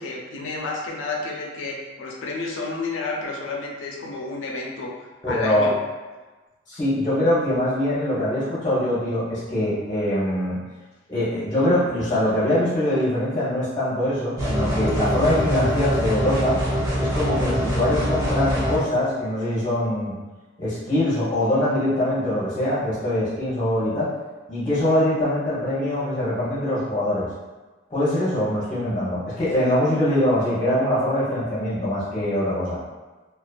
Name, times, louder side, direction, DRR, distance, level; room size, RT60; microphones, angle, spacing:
voice 1, 0.0-5.8 28.2-28.3, left 3 dB, 90° left, -1 dB, 0.5 m, -31 dB
voice 2, 5.2-5.7 6.7-10.6 11.1-16.6 17.0-20.1 20.6-24.1 24.5-27.3 27.9-32.8, left 1 dB, 20° left, -10 dB, 0.7 m, -23 dB
sound 1, 14.4-18.8, equal, 15° right, 0.6 m, -24 dB
2.3 x 2.3 x 2.2 m, 1.2 s
head